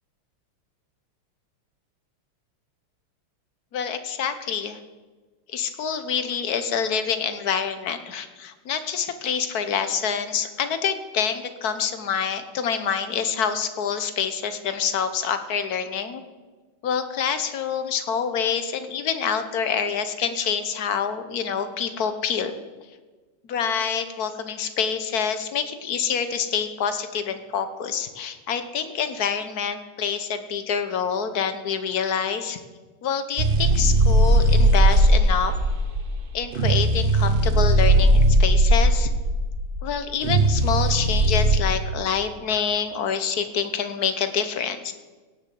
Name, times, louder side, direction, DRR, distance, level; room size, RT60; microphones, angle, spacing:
voice 1, 3.7-4.8 5.5-16.2 16.8-22.5 23.5-32.6 33.0-35.5 36.3-39.1 39.8-44.9, left 7 dB, 55° left, 10 dB, 1.2 m, -26 dB
sound 1, 33.4-41.6, right 1 dB, 70° right, 0.5 m, -18 dB
17.0 x 6.8 x 7.7 m, 1.3 s
omnidirectional pair, 2.4 m